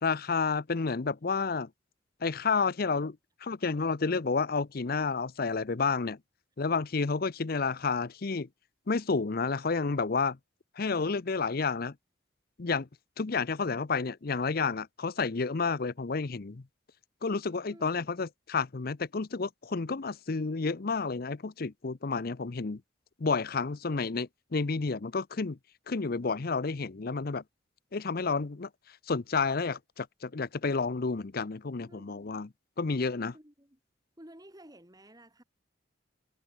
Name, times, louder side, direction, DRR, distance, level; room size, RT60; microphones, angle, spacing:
voice 1, 0.0-1.7 2.2-3.2 3.4-6.2 6.6-8.5 8.9-10.4 10.8-11.9 12.6-12.9 13.2-16.6 17.2-22.8 23.2-25.6 25.9-27.4 27.9-28.7 29.1-32.5 32.8-33.3, left 4 dB, 50° left, 0.7 m, -30 dB
voice 2, 17.6-18.2 31.9-32.3 32.8-33.0 33.3-33.8 34.2-35.4, right 1 dB, 20° right, 4.7 m, -54 dB
head